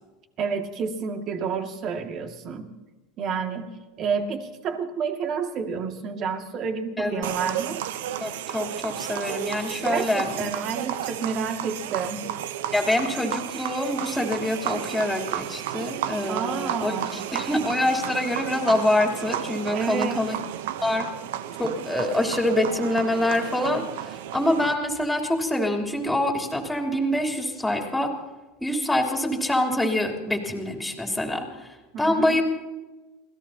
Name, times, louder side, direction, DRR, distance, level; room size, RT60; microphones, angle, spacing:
voice 1, 0.4-2.7 3.2-3.7 4.0-7.8 9.8-12.3 16.3-17.2 19.7-20.2 31.9-32.4, right 6 dB, 45° right, 5 dB, 2.1 m, -29 dB
voice 2, 7.0-7.5 8.2-10.5 12.7-20.4 20.8-21.1 21.6-28.1 28.6-32.4, left 1 dB, 5° left, 2 dB, 3.3 m, -25 dB
sound 1, 7.2-24.7, right 11 dB, 75° right, 0.8 m, -33 dB
27.5 x 17.0 x 2.9 m, 1.2 s
hypercardioid pair, 105°, 0 cm